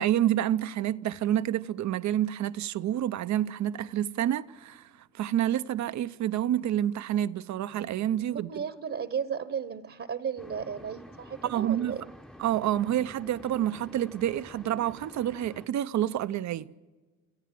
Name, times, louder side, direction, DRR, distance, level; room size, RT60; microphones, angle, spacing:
voice 1, 0.0-4.9 5.1-8.5 11.4-12.0 12.4-16.7, right 11 dB, 65° right, 0.7 m, -28 dB
voice 2, 8.3-12.0, right 7 dB, 45° right, 1.1 m, -34 dB
sound 1, 10.4-15.7, left 1 dB, ahead, 0.8 m, -49 dB
29.5 x 14.0 x 7.6 m
cardioid pair, 90°, 30 cm